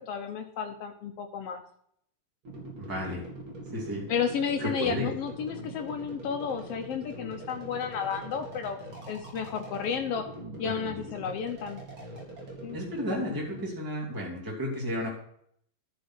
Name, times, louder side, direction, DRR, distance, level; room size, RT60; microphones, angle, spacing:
voice 1, 0.1-1.6 4.1-8.8 9.1-10.3 10.6-11.8 12.6-12.8, left 7 dB, 80° left, 5 dB, 1.3 m, -32 dB
sound 1, 2.4-13.7, right 2 dB, 40° right, 3.0 m, -43 dB
voice 2, 2.8-3.2 3.7-4.0 4.6-5.1 10.6-11.3 12.7-15.1, equal, 5° right, -3 dB, 2.4 m, -33 dB
11.0 x 6.2 x 6.0 m, 0.68 s
omnidirectional pair, 3.7 m